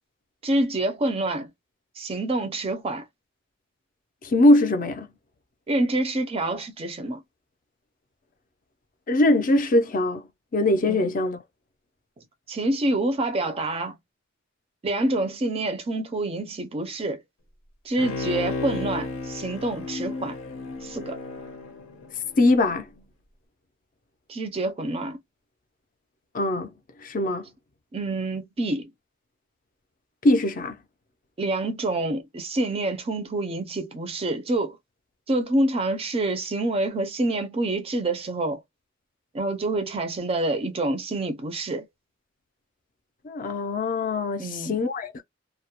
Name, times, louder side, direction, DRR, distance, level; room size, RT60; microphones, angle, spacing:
voice 1, 0.4-1.5 2.0-3.1 5.7-7.2 10.9-11.1 12.5-14.0 14.8-17.2 17.8-20.3 20.8-21.2 24.3-25.2 27.9-28.9 31.4-34.8 35.3-38.6 39.3-41.9 44.4-44.8, right 2 dB, 30° right, 0.4 m, -27 dB
voice 2, 4.2-5.1 9.1-10.2 10.5-11.4 22.4-22.9 26.3-26.7 27.0-27.5 30.2-30.8 43.2-45.2, left 1 dB, 40° left, 0.4 m, -21 dB
Bowed string instrument, 18.0-22.6 23.0-23.1, left 3 dB, 85° left, 0.7 m, -33 dB
2.3 x 2.0 x 2.8 m
head